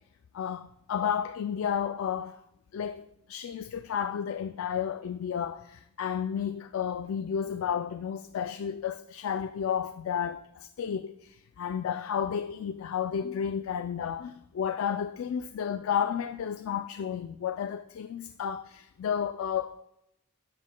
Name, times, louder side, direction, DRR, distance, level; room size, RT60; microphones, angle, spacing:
voice 1, 0.3-2.4 2.7-19.8, left 8 dB, 85° left, 0.3 m, -32 dB
12.5 x 8.3 x 2.2 m
head